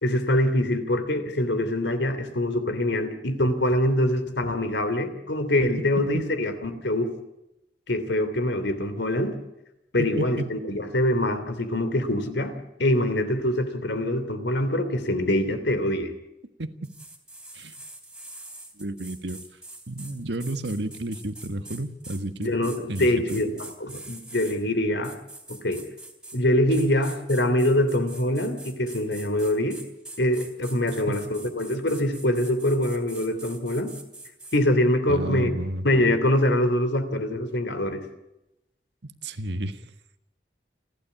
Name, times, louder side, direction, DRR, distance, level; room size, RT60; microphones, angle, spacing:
voice 1, 0.0-7.1 7.9-9.4 9.9-16.1 22.4-25.1 25.5-25.8 26.3-29.8 30.2-33.9 34.5-35.5 35.8-38.0, left 1 dB, 85° left, 10 dB, 3.1 m, -24 dB
voice 2, 10.0-10.5 16.6-16.9 17.5-17.8 18.8-19.4 19.9-23.4 30.9-31.3 35.1-35.8 39.0-39.8, right 1 dB, 80° right, 10 dB, 1.6 m, -32 dB
sound 1, 16.8-24.6 25.0-26.4 26.7-34.6, right 2 dB, 5° right, 3.2 m, -44 dB
30.0 x 12.5 x 8.5 m, 0.89 s
head